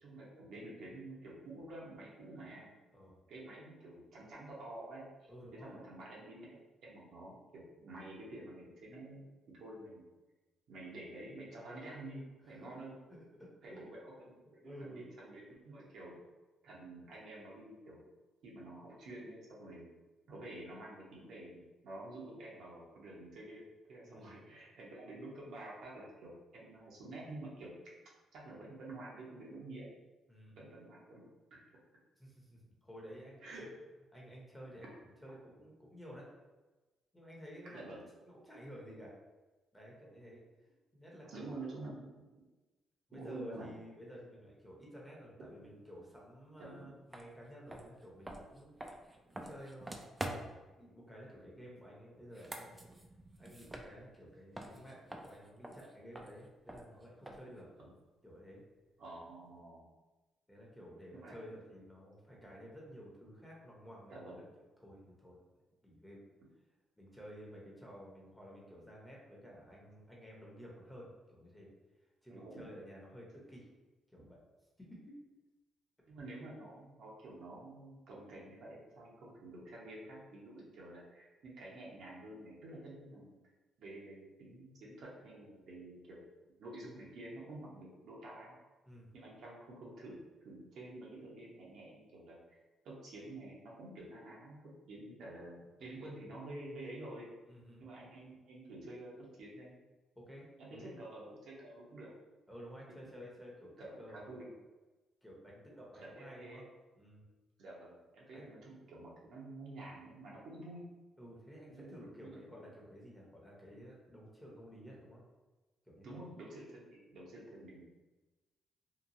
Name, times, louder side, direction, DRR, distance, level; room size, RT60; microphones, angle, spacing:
voice 1, 0.0-2.7 3.3-5.3 5.6-6.6 6.8-9.2 9.5-10.0 10.7-13.0 13.6-14.3 14.6-16.2 16.6-18.0 18.4-19.9 20.3-23.6 23.9-27.8 28.3-29.9 30.6-31.2 31.5-31.6 33.4-33.7 37.7-38.1 41.3-42.3 43.1-43.7 46.6-46.9 57.8-57.9 59.0-59.9 61.1-61.6 64.1-64.5 72.3-72.7 76.0-83.3 83.8-86.3 86.6-88.5 89.1-92.4 92.8-97.3 97.8-99.8 100.6-102.1 103.8-104.5 106.0-106.6 107.6-110.8 111.7-112.0 112.2-112.6 116.0-117.9, right 2 dB, 70° right, -4 dB, 0.8 m, -49 dB
voice 2, 5.3-5.7 12.4-13.9 14.6-15.1 24.0-24.4 30.3-30.6 32.2-33.7 34.1-36.3 37.1-37.9 38.3-39.2 39.7-40.4 40.9-41.5 43.1-48.7 49.4-50.4 50.8-52.8 53.4-57.7 58.2-58.6 60.5-64.4 64.8-65.4 65.8-66.2 67.0-71.7 72.2-73.7 74.1-74.4 74.8-75.2 88.8-89.1 97.5-97.8 100.2-101.0 102.5-104.5 105.2-106.6 107.0-107.3 108.3-108.4 111.2-115.2 115.9-116.3, equal, 5° left, -4 dB, 0.8 m, -52 dB
sound 1, 47.1-47.3 47.7-50.7 52.2-54.3 54.5-57.6, right 1 dB, 15° right, 0.3 m, -46 dB
2.8 x 2.2 x 2.6 m, 1.2 s
cardioid pair, 90°, 0 cm